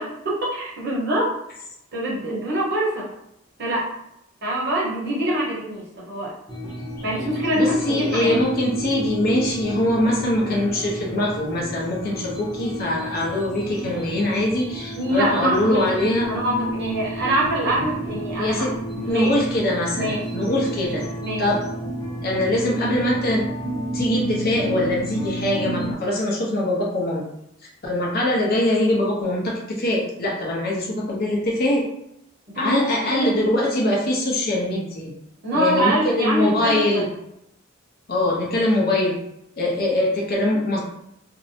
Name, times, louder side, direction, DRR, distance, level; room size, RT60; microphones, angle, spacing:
voice 1, 0.0-1.3 1.9-3.1 3.6-3.9 4.4-6.3 7.0-8.4 15.0-15.8 16.3-18.7 19.1-19.3 19.9-20.2 21.2-21.4 32.5-33.6 35.4-37.1, right 1 dB, 55° right, -5 dB, 1.0 m, -24 dB
sound 1, 6.5-25.9, equal, 20° left, 0.8 m, -31 dB
voice 2, 7.5-16.3 18.4-18.7 19.0-21.0 21.4-21.6 22.2-23.5 23.9-27.2 27.8-31.9 32.6-35.1 35.5-37.1 38.1-39.2 39.6-40.8, left 1 dB, 50° left, -3 dB, 0.7 m, -22 dB
2.6 x 2.1 x 2.7 m, 0.78 s
head